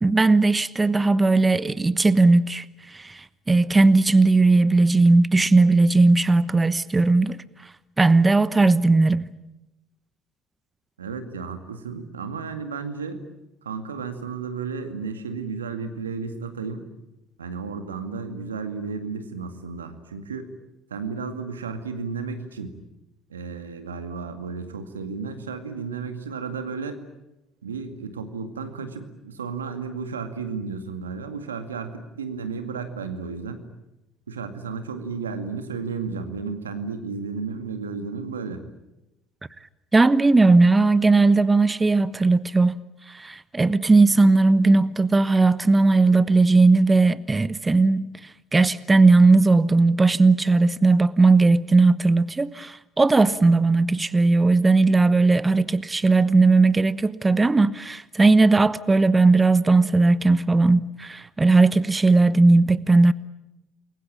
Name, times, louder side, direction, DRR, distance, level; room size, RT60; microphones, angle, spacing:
voice 1, 0.0-7.4 8.0-9.2 39.9-42.8 43.1-48.1 48.5-63.1, right 3 dB, 20° right, 1.1 m, -18 dB
voice 2, 11.0-13.2 13.6-16.9 17.4-20.5 20.9-22.7 23.3-27.0 27.6-33.7 34.3-38.6, right 5 dB, 90° right, 2.1 m, -33 dB
28.5 x 22.5 x 8.8 m
hypercardioid pair, 55°, 0 cm